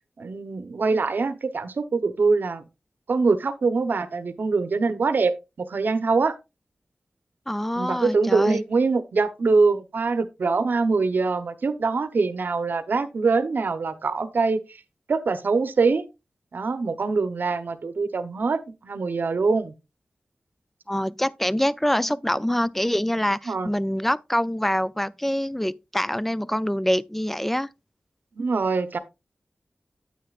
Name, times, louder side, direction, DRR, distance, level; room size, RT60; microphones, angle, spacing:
voice 1, 0.2-2.6 3.1-6.3 7.7-14.8 15.1-16.0 16.5-19.7 23.5-23.7 28.3-29.0, right 4 dB, 75° right, 0.8 m, -24 dB
voice 2, 7.5-8.6 20.9-27.7, equal, 5° left, 0.3 m, -25 dB
9.2 x 8.6 x 2.4 m
wide cardioid pair, 100°, 3 cm